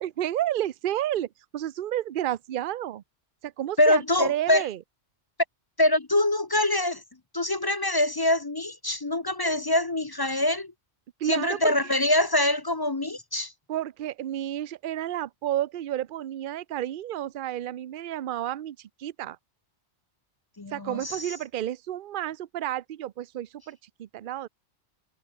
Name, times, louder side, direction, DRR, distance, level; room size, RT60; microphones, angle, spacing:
voice 1, 0.0-3.0 3.4-4.8 11.2-11.7 13.7-19.4 20.7-24.5, right 12 dB, 55° right, 0.7 m, -31 dB
voice 2, 3.8-4.6 5.8-7.0 7.3-10.7 11.2-13.5 20.6-21.3, left 1 dB, 25° left, 0.6 m, -24 dB
omnidirectional pair, 1.2 m